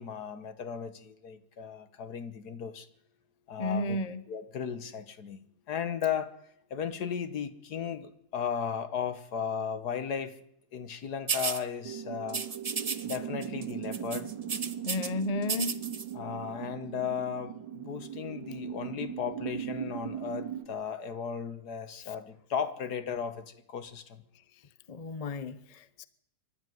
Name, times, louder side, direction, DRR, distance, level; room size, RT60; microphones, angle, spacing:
voice 1, 0.0-2.9 3.5-4.0 4.3-6.4 6.7-10.4 10.7-12.4 13.0-14.3 16.1-24.2, left 7 dB, 60° left, 1.8 m, -35 dB
voice 2, 3.6-4.2 14.8-15.7 24.9-26.0, left 2 dB, 35° left, 0.6 m, -33 dB
sound 1, 11.3-11.6 12.3-13.2 13.4-13.6 13.9-15.1 15.4-16.0, right 5 dB, 45° right, 0.4 m, -33 dB
sound 2, 11.8-20.7, right 9 dB, 85° right, 2.4 m, -39 dB
24.0 x 12.5 x 9.4 m
omnidirectional pair, 2.0 m